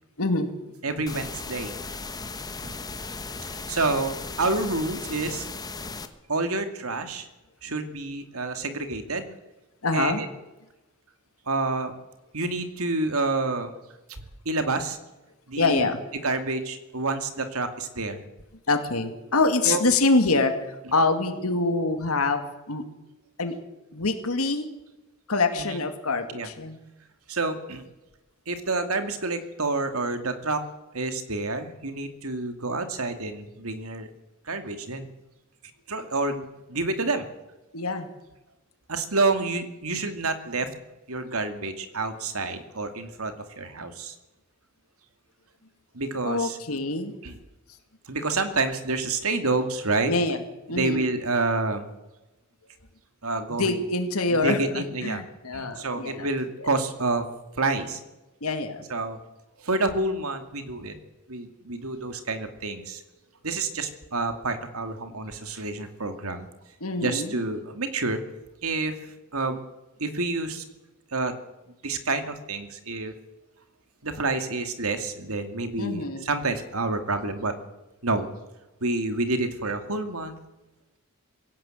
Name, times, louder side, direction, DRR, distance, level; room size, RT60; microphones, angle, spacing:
voice 1, 0.2-0.5 9.8-10.2 15.6-16.0 18.7-20.7 20.9-22.8 23.4-23.5 23.9-24.7 25.3-26.8 37.7-38.1 46.2-47.1 50.1-50.4 50.7-51.0 53.5-56.3 56.6-56.7 58.4-58.8 66.8-67.3 75.8-76.3, left 3 dB, 80° left, 7 dB, 2.2 m, -25 dB
voice 2, 0.8-1.8 2.6-2.7 3.7-5.5 6.3-7.3 7.6-9.3 9.9-10.3 11.5-11.9 12.3-13.7 14.5-15.0 15.5-15.9 16.2-18.2 19.6-19.8 25.6-25.8 26.3-26.5 27.3-27.8 28.5-30.6 30.9-34.1 34.5-35.1 35.9-37.3 38.9-40.7 41.1-44.1 45.9-46.6 47.2-47.4 48.1-50.1 50.7-51.8 53.2-53.8 54.3-55.2 55.5-57.2 57.6-58.0 58.9-59.2 59.6-61.0 61.3-63.0 63.4-66.5 67.0-68.2 68.6-69.0 69.3-69.6 70.0-70.6 71.1-71.3 71.8-73.1 74.0-77.5 78.0-78.3 78.8-80.4, right 3 dB, 75° right, 8 dB, 2.4 m, -28 dB
sound 1, 1.1-6.1, left 3 dB, 15° left, 1.2 m, -36 dB
21.0 x 17.0 x 7.8 m, 1.0 s
head